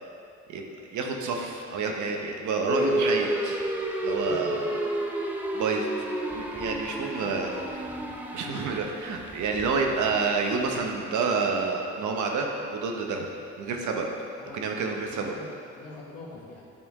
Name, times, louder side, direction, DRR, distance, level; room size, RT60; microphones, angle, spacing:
voice 1, 0.9-3.6 4.0-4.7 5.5-5.9 6.3-7.5 8.3-13.3 13.6-14.1 14.5-15.3, right 4 dB, 75° right, 2 dB, 0.9 m, -28 dB
sound 1, 2.7-11.0, right 1 dB, 5° right, 0.6 m, -31 dB
voice 2, 4.2-5.0 7.1-7.4 7.9-8.1 9.9-10.2 14.4-14.7 15.1-16.6, left 3 dB, 55° left, -4 dB, 1.7 m, -45 dB
9.0 x 4.4 x 3.6 m, 2.4 s
cardioid pair, 90°, 30 cm